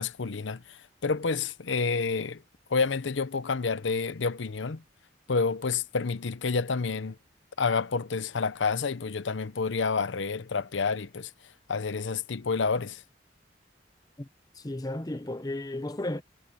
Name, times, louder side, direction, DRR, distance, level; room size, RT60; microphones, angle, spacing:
voice 1, 0.0-2.4 2.7-4.8 5.3-7.2 7.6-11.3 11.7-13.0, left 4 dB, 90° left, 0.7 m, -29 dB
voice 2, 14.5-16.2, left 1 dB, 20° left, 0.8 m, -34 dB
head